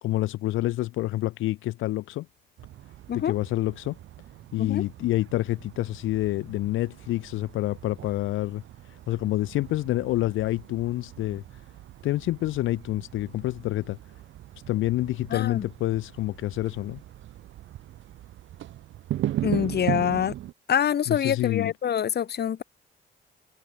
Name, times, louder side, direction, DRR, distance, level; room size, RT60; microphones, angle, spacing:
voice 1, 0.0-2.3 3.1-4.0 4.5-11.6 12.0-14.0 14.7-17.0 21.1-21.7, left 16 dB, 80° left, 0.7 m, -28 dB
sound 1, 2.6-20.5, right 13 dB, 75° right, 1.3 m, -38 dB
voice 2, 15.3-15.7 19.4-20.3 20.7-22.6, left 9 dB, 55° left, 1.9 m, -25 dB
cardioid pair, 90°, 20 cm